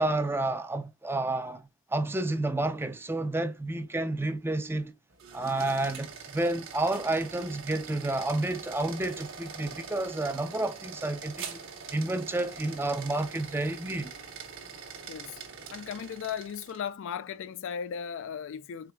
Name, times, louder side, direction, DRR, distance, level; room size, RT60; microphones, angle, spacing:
voice 1, 0.0-4.9 5.3-11.6 11.9-14.1, right 2 dB, 10° right, 0.4 m, -30 dB
sound 1, 5.1-16.9, right 5 dB, 60° right, 1.1 m, -44 dB
voice 2, 15.1-15.4 15.7-18.9, left 7 dB, 60° left, 0.3 m, -36 dB
4.9 x 3.4 x 2.2 m
head